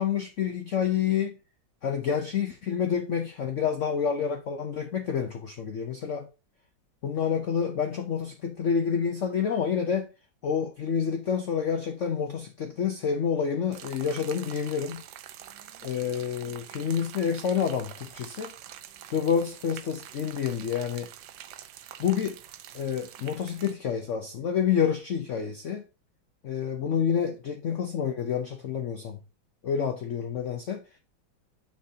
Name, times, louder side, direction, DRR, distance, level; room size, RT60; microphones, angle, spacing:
voice 1, 0.0-1.4 1.8-6.3 7.0-10.1 10.4-15.0 15.8-18.5 19.1-21.1 22.0-22.4 22.7-25.8 26.4-29.2 29.6-30.8, left 7 dB, 85° left, 0.6 m, -28 dB
sound 1, 13.7-23.7, right 11 dB, 75° right, 1.3 m, -46 dB
7.0 x 6.0 x 2.7 m
omnidirectional pair, 2.1 m